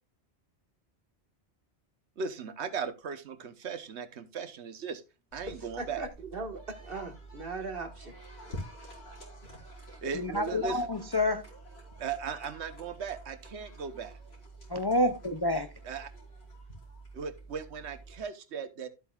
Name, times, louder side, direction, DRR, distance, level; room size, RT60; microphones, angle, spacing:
voice 1, 2.2-5.0 5.3-6.0 10.0-10.8 12.0-14.2 15.8-16.1 17.1-18.9, right 6 dB, 90° right, 1.2 m, -37 dB
sound 1, 5.3-18.2, right 1 dB, 70° left, 3.7 m, -48 dB
voice 2, 5.5-8.2, right 3 dB, 60° right, 1.9 m, -39 dB
voice 3, 10.1-11.4 14.7-15.7, left 1 dB, 35° left, 0.4 m, -28 dB
12.0 x 8.1 x 2.4 m
omnidirectional pair, 1.1 m